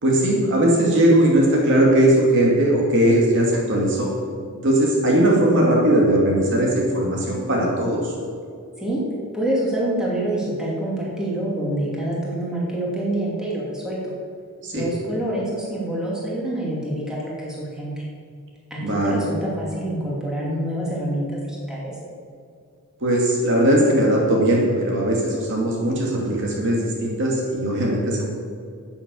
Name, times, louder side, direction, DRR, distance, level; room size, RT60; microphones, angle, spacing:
voice 1, 0.0-4.1 4.6-8.1 14.6-14.8 18.8-19.2 23.0-28.3, right 1 dB, 55° right, -2 dB, 2.4 m, -19 dB
voice 2, 9.3-14.1 14.7-16.8 17.1-18.0 18.7-21.9, right 1 dB, 5° right, -6 dB, 2.9 m, -26 dB
10.0 x 8.7 x 7.0 m, 2.3 s
head